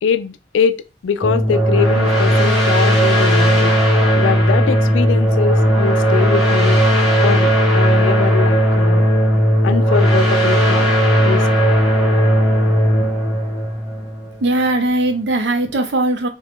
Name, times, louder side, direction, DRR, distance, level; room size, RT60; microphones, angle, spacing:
voice 1, 0.0-3.7 4.2-6.8 7.2-9.0 9.6-10.9 11.2-11.4, left 6 dB, 90° left, 0.3 m, -22 dB
sound 1, 1.2-14.6, equal, ahead, 1.4 m, -15 dB
voice 2, 14.4-16.3, right 1 dB, 70° right, 0.6 m, -19 dB
2.4 x 2.3 x 3.4 m
head